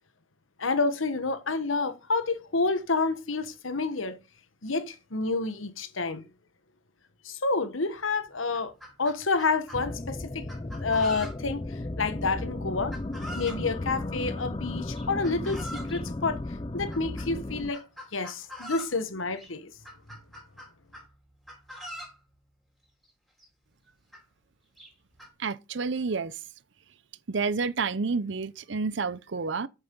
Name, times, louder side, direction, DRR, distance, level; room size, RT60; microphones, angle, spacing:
voice 1, 0.6-4.2 4.6-6.3 7.2-8.7 9.0-10.5 10.8-12.9 13.3-16.4 16.7-17.8 18.1-19.7, left 3 dB, 85° left, 1.3 m, -29 dB
Chicken rooster, 7.9-8.0 8.4-9.8 10.5-11.6 12.9-13.6 14.9-16.0 16.9-17.3 17.7-19.0 19.4-19.5 19.8-21.1 21.4-22.2 23.1-23.2 23.4-23.5 24.1-24.2 24.8-25.3, equal, ahead, 3.2 m, -43 dB
sound 1, 9.7-17.7, left 2 dB, 25° left, 0.5 m, -35 dB
voice 2, 25.4-26.3 27.3-29.7, right 4 dB, 65° right, 0.7 m, -29 dB
8.2 x 7.0 x 5.4 m
head